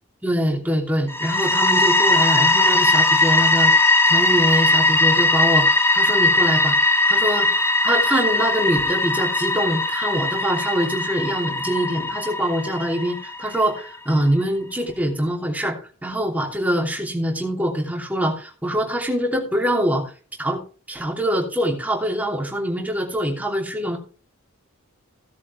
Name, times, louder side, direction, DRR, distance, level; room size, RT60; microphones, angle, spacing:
voice 1, 0.2-7.5 7.8-20.1 20.4-20.6 20.9-24.0, equal, 5° right, 1 dB, 3.0 m, -24 dB
sound 1, 1.1-13.8, left 2 dB, 10° left, 1.8 m, -19 dB
17.0 x 7.3 x 3.4 m, 0.37 s
head